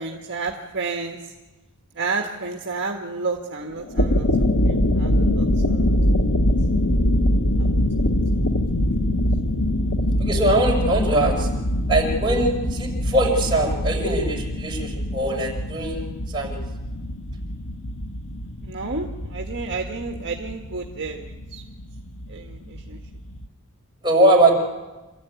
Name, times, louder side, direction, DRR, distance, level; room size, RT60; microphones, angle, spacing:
voice 1, 0.0-1.3 1.9-5.9 7.6-7.7 18.6-21.6 22.3-23.0, right 4 dB, 55° right, 2 dB, 1.6 m, -31 dB
sound 1, 3.8-23.5, left 1 dB, 85° left, 1.4 m, -23 dB
voice 2, 10.2-11.5 11.9-16.6 24.0-24.5, right 1 dB, 20° right, -1 dB, 5.8 m, -21 dB
27.0 x 14.0 x 9.4 m, 1.1 s
head